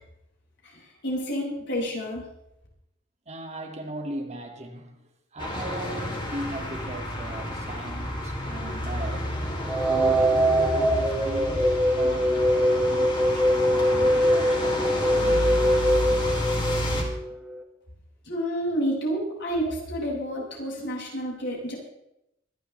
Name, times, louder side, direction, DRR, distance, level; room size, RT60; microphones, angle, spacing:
voice 1, 1.0-2.2 18.3-21.8, equal, 60° left, 6.8 m, -29 dB
voice 2, 3.3-9.4 9.9-15.5, right 1 dB, 35° right, 2.3 m, -38 dB
sound 1, 5.4-17.0, equal, 25° left, 3.4 m, -31 dB
sound 2, 9.7-17.6, equal, 5° right, 3.0 m, -23 dB
25.5 x 12.0 x 3.4 m
head